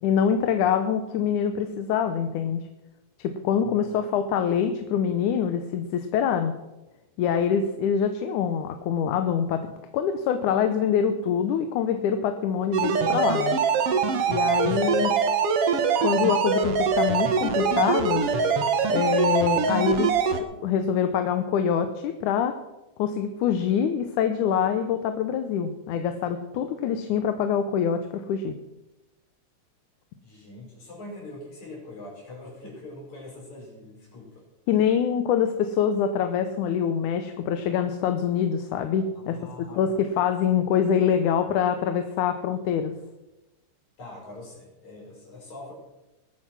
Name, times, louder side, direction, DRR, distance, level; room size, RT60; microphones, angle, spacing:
voice 1, 0.0-2.7 3.2-6.5 7.2-9.7 9.9-13.6 14.3-15.1 16.0-18.2 18.9-20.1 20.6-22.6 23.0-28.5 34.7-39.4 39.8-42.9, left 8 dB, 90° left, 8 dB, 2.4 m, -25 dB
sound 1, 12.7-20.4, right 6 dB, 60° right, 1.9 m, -23 dB
voice 2, 14.5-14.8 30.2-34.4 39.1-40.0 44.0-45.7, left 2 dB, 70° left, -3 dB, 6.7 m, -43 dB
20.5 x 9.1 x 6.1 m, 1.0 s
omnidirectional pair, 3.4 m